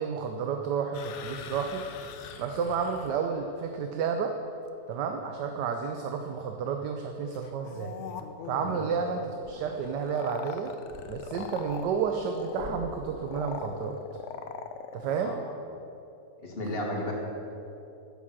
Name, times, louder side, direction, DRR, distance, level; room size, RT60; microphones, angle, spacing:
voice 1, 0.0-1.8 2.4-4.3 4.9-7.9 8.4-10.7 11.1-14.0 14.9-15.3, right 6 dB, 75° right, 4 dB, 1.3 m, -31 dB
sound 1, 0.9-3.2 7.3-15.3, left 6 dB, 65° left, 0.7 m, -41 dB
sound 2, 9.4-10.0 10.5-11.4 11.7-13.7, right 2 dB, 45° right, 3.0 m, -48 dB
voice 2, 15.2-15.5 16.4-17.1, left 1 dB, 35° left, -1 dB, 1.9 m, -34 dB
10.5 x 7.5 x 7.4 m, 2.8 s
omnidirectional pair, 1.9 m